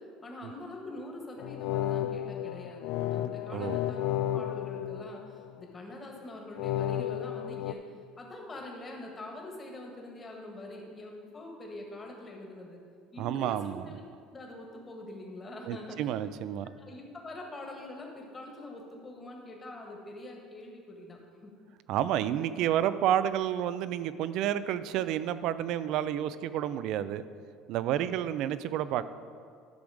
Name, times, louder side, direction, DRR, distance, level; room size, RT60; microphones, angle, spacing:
voice 1, 0.2-7.8 8.2-12.8 13.1-14.0 14.3-16.1 16.8-21.5 27.9-28.2, left 2 dB, 25° left, 0 dB, 1.8 m, -44 dB
sound 1, 1.4-5.7 6.6-7.7, left 12 dB, 70° left, 0.3 m, -33 dB
voice 2, 3.2-3.8 13.2-14.0 15.7-16.7 21.9-27.2 27.7-29.0, right 11 dB, 65° right, 14 dB, 0.4 m, -30 dB
10.5 x 6.3 x 5.0 m, 2.2 s
supercardioid pair, 115°, 0 cm